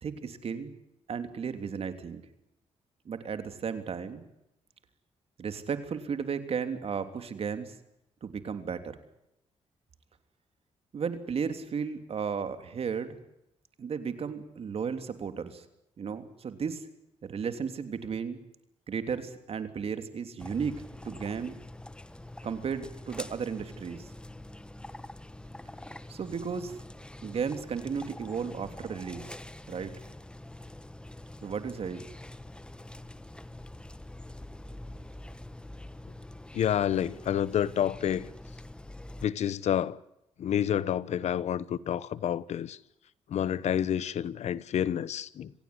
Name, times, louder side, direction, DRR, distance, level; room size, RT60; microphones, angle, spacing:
voice 1, 0.0-0.7 1.1-2.2 3.0-4.2 5.4-7.7 8.2-9.0 10.9-13.2 13.8-15.7 16.0-16.9 17.2-18.4 18.9-21.6 22.4-24.1 26.1-26.8 27.2-29.3 29.7-29.9 31.4-32.1, right 6 dB, 55° right, 3.2 m, -34 dB
sound 1, 20.4-39.3, left 1 dB, 10° left, 1.3 m, -45 dB
voice 2, 36.5-38.3 39.2-40.0 40.4-42.8 43.3-45.5, left 10 dB, 70° left, 1.0 m, -29 dB
26.0 x 17.0 x 9.7 m
cardioid pair, 80°, 12 cm